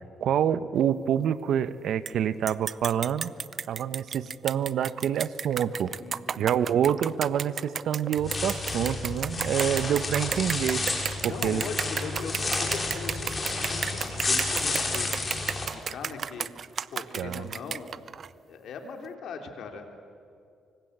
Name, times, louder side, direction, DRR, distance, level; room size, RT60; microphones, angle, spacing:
voice 1, 0.2-3.3 3.7-5.9 6.4-10.9 11.2-11.6 17.2-17.5, right 9 dB, 70° right, 14 dB, 0.9 m, -27 dB
sound 1, 2.1-2.2 2.5-18.3, right 7 dB, 50° right, 0.6 m, -33 dB
voice 2, 6.0-6.5 11.3-15.1 15.5-16.5 16.9-17.9 18.5-19.9, left 5 dB, 70° left, 4 dB, 3.3 m, -39 dB
sound 2, 8.2-15.7, left 3 dB, 30° left, 5.6 m, -31 dB
25.5 x 24.5 x 8.0 m, 2.4 s
cardioid pair, 90°, 0 cm